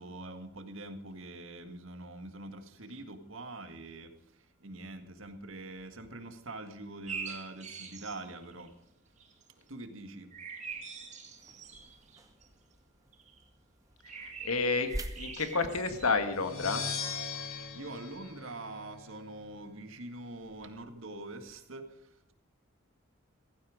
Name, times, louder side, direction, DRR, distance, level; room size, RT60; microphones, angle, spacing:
voice 1, 0.0-8.8 9.6-10.4 10.7-10.8 11.5-11.6 17.7-22.3, right 2 dB, 70° right, 1.9 m, -44 dB
sound 1, 7.1-8.7 9.2-9.5 10.3-12.5 13.1-13.4 14.0-16.9 17.3-17.6, right 5 dB, 35° right, 2.3 m, -44 dB
sound 2, 11.4-16.7, right 1 dB, 15° right, 0.9 m, -46 dB
voice 2, 14.4-16.8, left 4 dB, 90° left, 1.9 m, -30 dB
sound 3, 16.3-19.2, left 5 dB, 75° left, 4.7 m, -39 dB
16.0 x 15.5 x 5.1 m
head